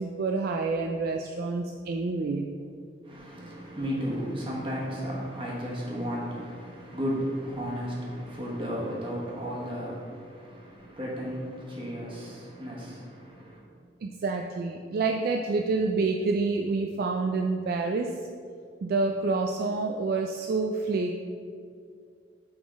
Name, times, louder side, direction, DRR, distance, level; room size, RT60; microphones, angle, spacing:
voice 1, 0.0-2.5 14.0-18.1 18.8-21.1, right 3 dB, 55° right, 2 dB, 0.3 m, -28 dB
voice 2, 3.0-13.6, equal, 30° right, -4 dB, 1.3 m, -34 dB
6.2 x 3.7 x 4.6 m, 2.3 s
head